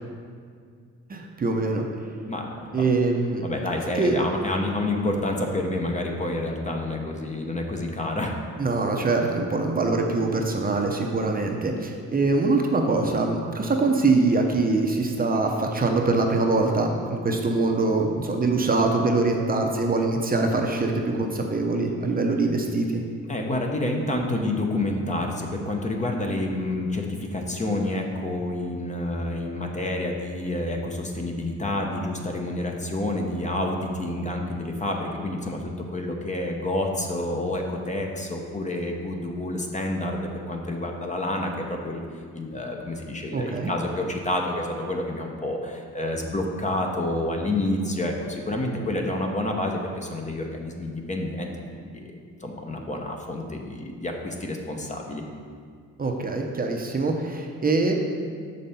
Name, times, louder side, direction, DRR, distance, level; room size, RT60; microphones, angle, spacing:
voice 1, 1.1-1.8 2.7-3.4 3.9-4.2 8.6-23.0 43.3-43.7 56.0-57.9, right 3 dB, 30° right, 2 dB, 0.7 m, -23 dB
voice 2, 2.3-2.9 3.4-8.4 23.3-42.0 42.3-52.1 52.4-55.2, left 1 dB, 25° left, 1 dB, 0.8 m, -29 dB
6.5 x 5.3 x 4.2 m, 2.1 s
cardioid pair, 90°, 30 cm